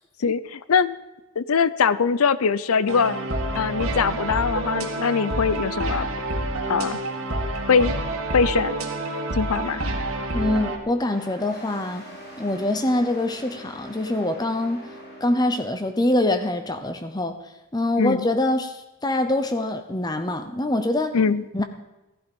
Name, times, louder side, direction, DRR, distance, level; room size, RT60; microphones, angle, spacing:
voice 1, 0.2-1.0 1.4-3.2 3.5-6.1 6.7-7.0 7.7-7.9 8.3-8.7 9.3-9.8 18.0-18.3 21.1-21.4, left 5 dB, 75° left, 16 dB, 0.6 m, -22 dB
sound 1, 2.9-10.8, right 1 dB, 75° right, 2.1 m, -28 dB
voice 2, 10.3-12.1 12.4-14.8 15.2-17.4 17.7-21.2 21.5-21.6, left 1 dB, 20° left, 9 dB, 0.7 m, -24 dB
sound 2, 11.0-16.1, equal, 45° left, 3.8 m, -43 dB
15.5 x 11.5 x 5.3 m, 1.0 s
head